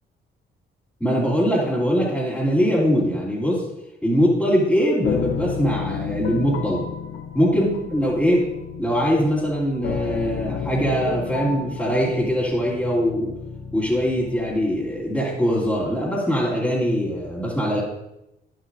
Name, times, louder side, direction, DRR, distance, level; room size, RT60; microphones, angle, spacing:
voice 1, 1.0-3.7 4.0-6.9 7.3-8.5 8.8-13.3 13.7-17.8, equal, 5° left, -10 dB, 3.0 m, -22 dB
sound 1, 5.0-14.6, left 7 dB, 75° left, 0.9 m, -32 dB
11.5 x 10.5 x 2.7 m, 0.88 s
cardioid pair, 90°, 20 cm